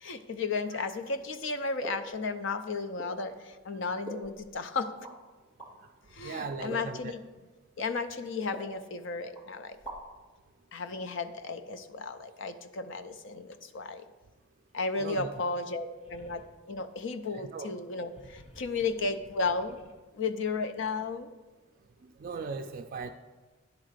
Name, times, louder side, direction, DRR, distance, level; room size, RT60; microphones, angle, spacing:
voice 1, 0.0-4.9 6.1-7.2 7.8-9.8 10.7-14.0 14.7-19.8 20.1-21.3, left 4 dB, 60° left, 9 dB, 0.5 m, -34 dB
sound 1, 1.8-2.2 3.0-3.2 4.0-4.6 5.0-5.2 5.6-5.7 6.7-7.0 7.8-7.9 8.5-9.1 9.3-9.4 9.7-10.2, right 1 dB, 10° left, 2.2 m, -43 dB
voice 2, 6.2-7.1 15.0-15.3 17.3-17.7 22.0-23.1, right 4 dB, 40° right, 6 dB, 0.3 m, -38 dB
sound 2, 15.9-16.5 18.0-19.9, equal, 30° left, 0.8 m, -55 dB
10.5 x 3.8 x 6.6 m, 1.3 s
head